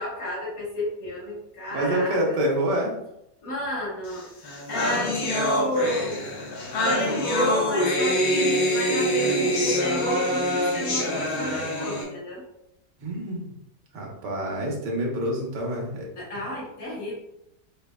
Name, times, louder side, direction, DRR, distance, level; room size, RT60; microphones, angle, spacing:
voice 1, 0.0-2.4 3.4-4.3 4.7-6.1 6.8-12.4 16.2-17.1, equal, 55° left, -5 dB, 1.5 m, -31 dB
voice 2, 1.7-3.0 13.0-13.5 13.9-16.1, right 1 dB, 80° right, 0 dB, 1.5 m, -27 dB
sound 1, 4.2-4.3 4.4-12.0, equal, 70° left, 1.4 m, -25 dB
5.1 x 2.9 x 2.2 m, 0.82 s
omnidirectional pair, 1.9 m